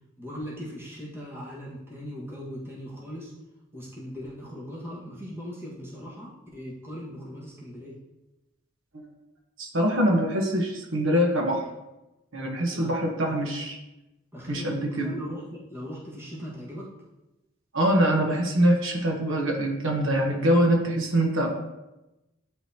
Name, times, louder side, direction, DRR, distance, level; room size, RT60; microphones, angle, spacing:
voice 1, 0.2-3.3 3.7-8.0 12.7-13.3 14.3-16.9, equal, 10° right, -6 dB, 1.5 m, -39 dB
voice 2, 9.6-11.6 12.3-13.8 14.5-15.1 17.7-21.7, right 1 dB, 75° right, 1 dB, 1.1 m, -24 dB
10.5 x 3.9 x 2.8 m, 0.99 s
head